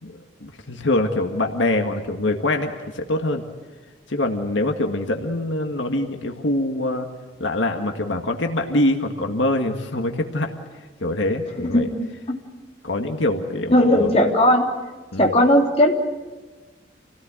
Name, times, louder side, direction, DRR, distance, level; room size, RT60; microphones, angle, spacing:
voice 1, 0.0-3.4 4.1-7.1 7.4-11.9 12.8-14.2 15.1-15.4, left 1 dB, 80° left, 4 dB, 1.9 m, -24 dB
voice 2, 13.7-14.7 15.2-15.9, left 1 dB, 30° left, -1 dB, 3.3 m, -17 dB
28.0 x 18.0 x 9.0 m, 1.3 s
head